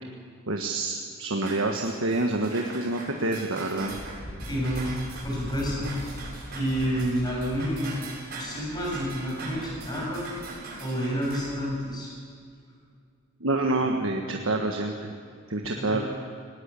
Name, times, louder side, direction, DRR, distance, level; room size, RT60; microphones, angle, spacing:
voice 1, 0.5-3.9 13.4-15.1 15.5-16.0, right 2 dB, 70° right, 2 dB, 1.5 m, -27 dB
sound 1, 1.4-11.4, right 3 dB, 50° right, 7.2 m, -41 dB
Wind, 3.8-11.9, left 1 dB, 45° left, 6.8 m, -42 dB
voice 2, 4.5-4.9 5.2-5.9 6.5-7.9 8.3-10.2 10.8-12.1 15.8-16.0, equal, 20° left, -3 dB, 7.4 m, -29 dB
19.0 x 19.0 x 8.4 m, 2.2 s
head